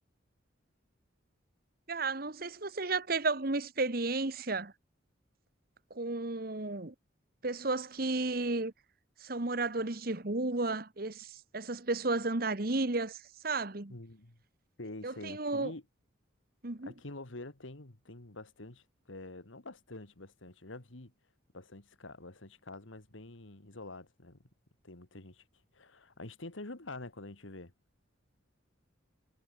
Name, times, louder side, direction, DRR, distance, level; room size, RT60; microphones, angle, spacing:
voice 1, 1.9-4.7 5.9-6.9 7.4-8.7 9.2-13.9 15.0-15.7 16.6-16.9, right 3 dB, 50° right, 1.4 m, -33 dB
voice 2, 13.9-14.4 14.8-15.8 16.8-21.1 21.5-24.5 24.8-25.4 25.7-27.7, left 2 dB, 85° left, 2.2 m, -47 dB
head